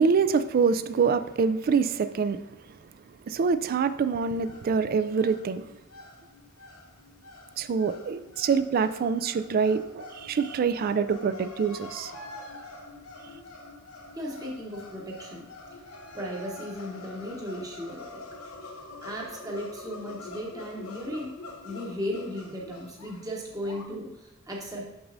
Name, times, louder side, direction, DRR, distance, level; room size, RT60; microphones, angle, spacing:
voice 1, 0.0-2.4 3.3-5.7 7.6-12.1, right 5 dB, 45° right, 11 dB, 0.3 m, -25 dB
sound 1, 4.0-23.8, left 2 dB, 90° left, 0.9 m, -45 dB
voice 2, 14.1-15.5 16.1-18.2 19.0-21.3 21.6-24.9, equal, 15° right, -2 dB, 1.0 m, -36 dB
6.2 x 6.1 x 2.6 m, 1.0 s
head